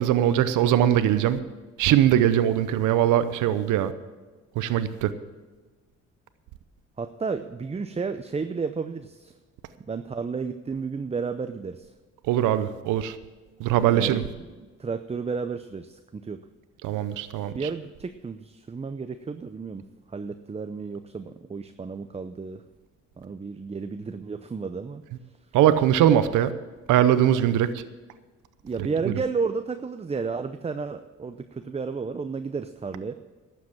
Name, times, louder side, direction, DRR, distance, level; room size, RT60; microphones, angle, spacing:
voice 1, 0.0-1.4 1.8-3.9 4.6-5.1 12.3-13.2 13.6-14.2 16.8-17.5 25.5-26.5 26.9-27.7 29.1-29.2, right 11 dB, 90° right, 12 dB, 0.7 m, -21 dB
voice 2, 7.0-9.3 9.8-11.9 13.9-14.2 14.6-16.4 17.5-22.6 23.2-25.0 28.6-33.1, right 5 dB, 20° right, 9 dB, 0.6 m, -32 dB
12.0 x 7.8 x 7.3 m, 1.3 s
cardioid pair, 90°, 30 cm